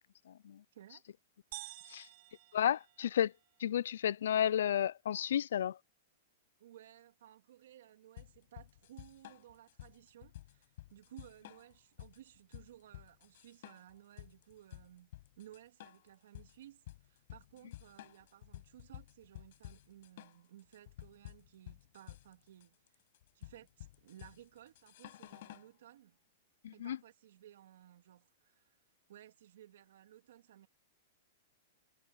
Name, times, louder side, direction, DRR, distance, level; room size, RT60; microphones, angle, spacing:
voice 1, 0.7-1.1 6.6-23.0 23.3-26.2 26.7-28.8 29.1-30.7, right 12 dB, 65° right, 3.1 m, -58 dB
sound 1, 1.5-3.5, right 20 dB, 40° right, 0.4 m, -50 dB
voice 2, 2.5-3.3 3.6-5.8 26.6-27.0, left 10 dB, 75° left, 0.3 m, -32 dB
sound 2, 8.2-25.7, left 15 dB, 50° left, 5.7 m, -52 dB
supercardioid pair, 175°, 0 cm